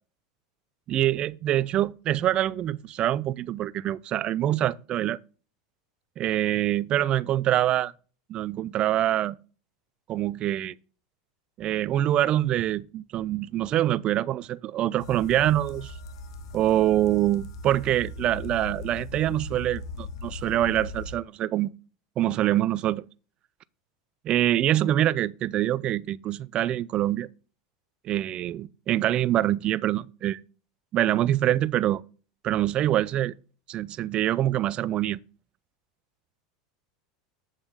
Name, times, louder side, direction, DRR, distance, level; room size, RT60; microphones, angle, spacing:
voice 1, 0.9-5.2 6.2-7.9 8.3-9.4 10.1-10.8 11.6-15.9 16.5-21.7 22.2-23.1 24.2-27.3 28.0-30.4 30.9-32.0 32.4-33.3 33.7-35.2, right 13 dB, 40° right, 0.5 m, -25 dB
sound 1, 15.0-21.1, left 2 dB, 80° left, 1.3 m, -39 dB
8.1 x 7.5 x 3.9 m
hypercardioid pair, 105°, 3 cm